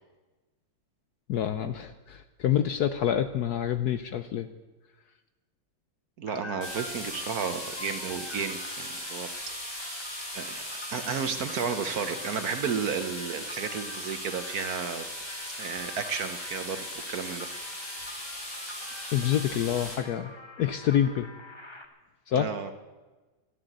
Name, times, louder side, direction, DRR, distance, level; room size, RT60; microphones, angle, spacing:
voice 1, 1.3-4.5 19.1-20.3 20.6-21.3 22.3-22.5, left 10 dB, 65° left, 10 dB, 1.0 m, -27 dB
voice 2, 6.2-9.3 9.7-10.0 10.3-10.6 10.9-15.1 15.6-17.5 22.3-22.7, right 6 dB, 55° right, 9 dB, 1.2 m, -33 dB
sound 1, 6.3-21.9, left 2 dB, 20° left, 0.8 m, -46 dB
sound 2, 6.6-19.9, left 1 dB, 45° left, 7.6 m, -38 dB
13.0 x 11.5 x 7.9 m, 1.2 s
omnidirectional pair, 2.2 m